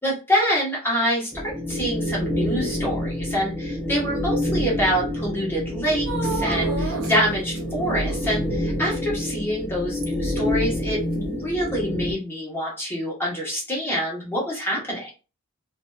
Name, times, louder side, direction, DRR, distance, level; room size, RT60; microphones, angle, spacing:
voice 1, 0.0-15.1, equal, 10° left, -4 dB, 0.9 m, -26 dB
sound 1, 1.3-12.1, left 1 dB, 10° right, 0.5 m, -27 dB
sound 2, 6.1-7.2 7.6-8.5 10.0-10.4 11.1-11.2, right 4 dB, 70° right, 0.7 m, -32 dB
2.6 x 2.3 x 2.2 m, 0.30 s
head